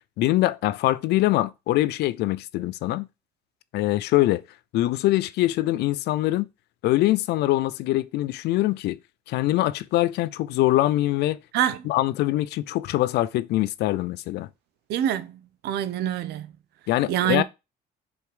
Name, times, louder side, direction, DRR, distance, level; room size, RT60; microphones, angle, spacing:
voice 1, 0.2-3.1 3.7-4.4 4.7-6.5 6.8-9.0 9.3-11.4 11.9-14.5 16.9-17.4, left 16 dB, 80° left, 0.6 m, -23 dB
voice 2, 11.5-11.9 14.9-16.5 17.1-17.4, right 10 dB, 75° right, 0.8 m, -26 dB
5.2 x 4.6 x 5.0 m
cardioid pair, 110°, 17 cm